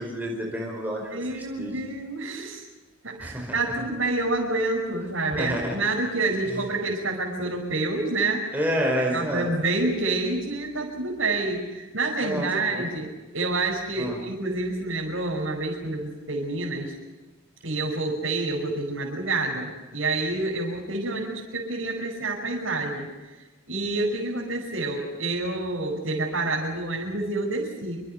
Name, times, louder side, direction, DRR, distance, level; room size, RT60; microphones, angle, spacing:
voice 1, 0.0-1.7 3.2-3.6 5.3-5.8 6.2-6.3 8.5-9.4 12.2-12.9 14.0-14.2, equal, 10° right, -1 dB, 4.9 m, -29 dB
voice 2, 1.0-2.6 3.0-8.5 9.1-16.9 17.6-23.1 23.7-28.0, right 2 dB, 80° right, -3 dB, 5.8 m, -28 dB
27.5 x 26.5 x 5.8 m, 1.2 s
head